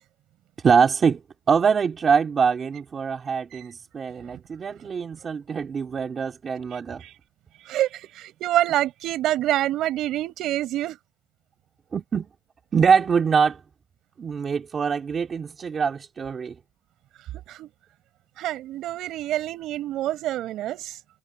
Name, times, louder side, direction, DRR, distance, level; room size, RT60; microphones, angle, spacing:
voice 1, 0.6-1.2 1.5-7.0 11.9-12.3 12.7-13.6 14.2-16.5, right 6 dB, 45° right, 3.1 m, -23 dB
voice 2, 7.7-11.0 17.3-17.7 18.4-21.0, right 14 dB, 85° right, 6.9 m, -26 dB
cardioid pair, 90°, 0 cm